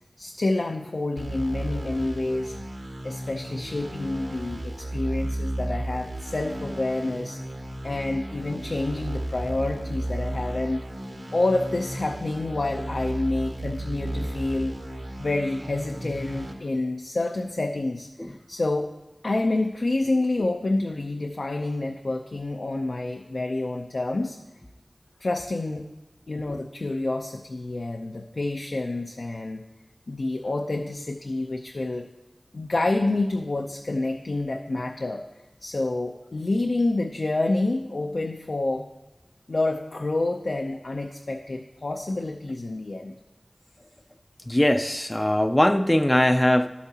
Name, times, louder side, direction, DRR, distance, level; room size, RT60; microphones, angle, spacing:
voice 1, 0.2-2.6 3.0-7.4 7.8-10.8 11.3-14.7 15.2-18.9 19.2-24.4 25.2-25.9 26.3-29.6 30.1-32.1 32.5-35.2 35.6-38.9 39.5-43.1, left 2 dB, 75° left, 3 dB, 0.5 m, -28 dB
sound 1, 1.2-16.5, right 1 dB, 80° right, 1.4 m, -34 dB
voice 2, 44.5-46.7, left 1 dB, 20° left, 8 dB, 0.4 m, -21 dB
11.5 x 8.3 x 2.8 m, 1.0 s
wide cardioid pair, 55°, 0 cm